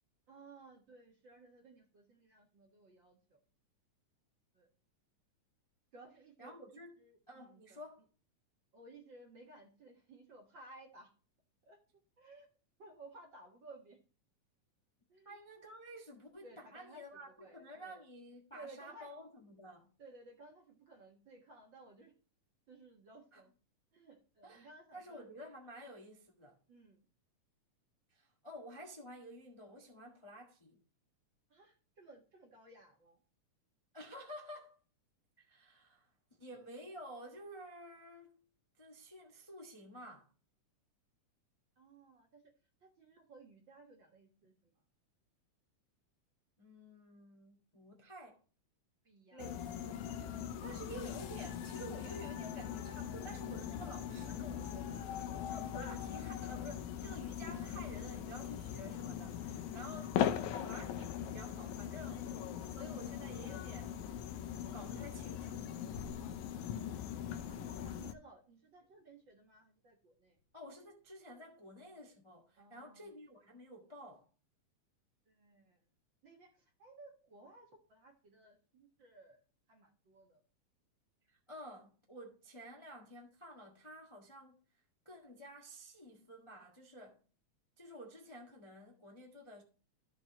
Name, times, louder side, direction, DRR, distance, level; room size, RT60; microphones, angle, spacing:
voice 1, 0.3-3.4 4.5-4.7 5.9-7.8 8.7-11.1 11.7-11.8 12.2-12.5 12.8-14.0 15.1-15.4 16.4-18.0 18.5-19.1 20.0-22.1 22.7-23.5 23.9-25.3 26.7-27.0 31.5-33.2 41.8-42.4 42.8-44.7 49.0-49.5 59.7-60.6 67.5-70.4 72.6-73.1 75.3-75.8 76.2-79.4 79.7-80.4, right 2 dB, 45° right, 1.7 m, -58 dB
voice 2, 6.4-8.0 15.2-19.9 23.3-23.4 24.4-26.6 28.1-30.8 33.9-34.8 35.4-36.1 36.4-38.4 38.8-40.3 46.6-48.4 49.3-50.1 50.6-62.3 62.7-64.0 64.7-65.7 70.5-74.3 81.3-84.6 85.0-87.2 87.8-89.6, equal, 15° left, 0.9 m, -51 dB
sound 1, 49.4-68.1, left 9 dB, 75° left, 2.0 m, -40 dB
sound 2, 52.0-66.1 66.6-66.9 67.8-68.1 68.8-68.9 70.4-70.5, left 3 dB, 40° left, 2.6 m, -60 dB
14.0 x 5.9 x 3.0 m
omnidirectional pair, 3.6 m